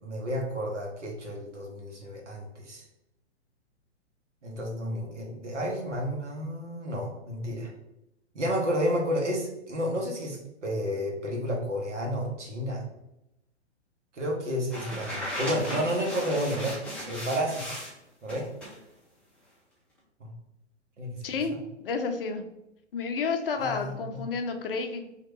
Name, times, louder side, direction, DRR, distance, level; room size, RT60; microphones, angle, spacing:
voice 1, 0.0-2.8 4.4-7.7 8.3-12.8 14.1-17.8 18.2-18.5 20.2-20.3 21.0-21.3 23.6-24.2, equal, 75° right, -1 dB, 1.2 m, -31 dB
sound 1, 14.7-17.9 18.3-18.8, equal, 5° left, 0.5 m, -36 dB
voice 2, 21.2-22.4 22.9-25.1, left 4 dB, 50° left, 6 dB, 0.5 m, -31 dB
3.1 x 2.8 x 3.0 m, 0.87 s
figure-of-eight pair, 125°, 36 cm